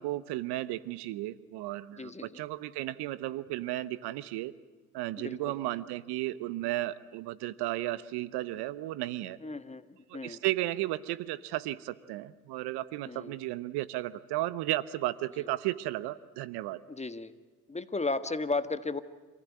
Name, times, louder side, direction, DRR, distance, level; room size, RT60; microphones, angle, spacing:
voice 1, 0.0-4.5 4.9-9.4 10.1-16.8, right 16 dB, 65° right, 17 dB, 1.0 m, -34 dB
voice 2, 2.0-2.4 5.2-5.4 9.4-9.8 10.1-10.4 13.1-13.3 16.9-17.3 17.7-19.0, left 3 dB, 15° left, 12 dB, 1.5 m, -34 dB
27.5 x 15.5 x 9.6 m, 1.3 s
hypercardioid pair, 65°, 42 cm